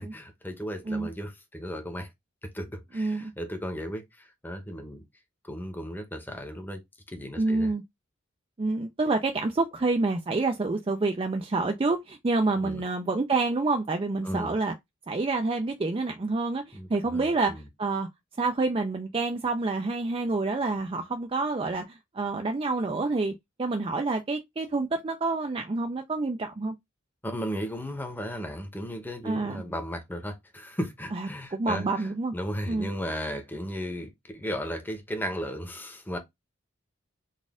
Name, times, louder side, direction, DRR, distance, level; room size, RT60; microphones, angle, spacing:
voice 1, 0.0-2.1 2.4-5.0 5.4-6.8 7.1-7.7 12.5-12.8 14.2-14.5 16.7-17.7 27.2-36.2, equal, 10° left, 0.9 m, -35 dB
voice 2, 2.9-3.3 7.4-7.8 8.6-14.7 15.1-18.1 18.4-23.3 23.6-26.8 29.2-29.6 31.1-32.3 32.7-32.9, right 3 dB, 25° right, 0.4 m, -28 dB
4.0 x 2.5 x 3.6 m
head